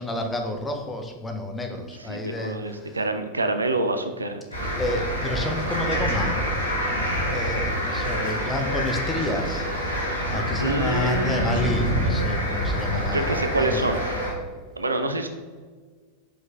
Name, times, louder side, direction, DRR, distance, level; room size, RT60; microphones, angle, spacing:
voice 1, 0.0-3.0 4.8-6.4 7.3-10.0 10.2-13.8, left 2 dB, 10° left, 4 dB, 0.6 m, -30 dB
voice 2, 2.0-4.4 10.6-11.7 13.1-14.3 14.8-15.3, right 2 dB, 80° right, 6 dB, 0.4 m, -26 dB
sound 1, 4.5-14.3, equal, 85° left, 1.2 m, -26 dB
5.0 x 3.8 x 2.5 m, 1.5 s
figure-of-eight pair, 90°, 0 cm